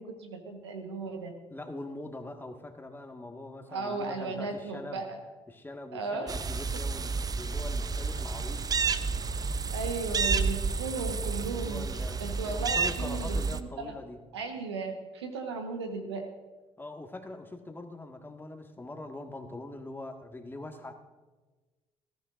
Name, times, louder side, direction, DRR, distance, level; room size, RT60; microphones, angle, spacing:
voice 1, 0.0-1.3 3.7-5.2 5.9-6.4 9.7-13.9 14.3-16.3, right 4 dB, 90° right, 5 dB, 1.2 m, -36 dB
voice 2, 1.5-5.0 5.5-8.7 11.5-14.2 16.8-20.9, left 2 dB, 15° left, 4 dB, 1.8 m, -43 dB
sound 1, 6.3-13.6, right 4 dB, 25° right, 0.7 m, -30 dB
20.0 x 15.0 x 2.6 m, 1.3 s
hypercardioid pair, 50°, 14 cm